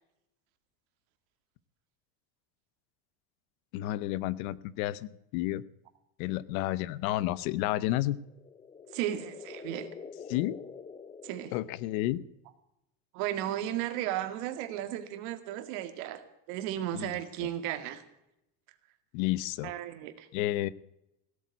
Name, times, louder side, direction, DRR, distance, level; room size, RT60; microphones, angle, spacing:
voice 1, 3.7-5.6 6.2-8.2 10.3-10.6 11.5-12.2 16.9-17.1 17.4-17.5 19.1-19.7 20.3-20.7, left 15 dB, 80° left, 19 dB, 1.0 m, -31 dB
sound 1, 8.1-12.3, left 6 dB, 15° left, 0.6 m, -47 dB
voice 2, 8.9-9.9 11.2-11.5 13.1-18.0 19.6-20.3, right 12 dB, 75° right, 9 dB, 2.3 m, -35 dB
17.0 x 8.3 x 9.4 m, 0.84 s
cardioid pair, 140°, 42 cm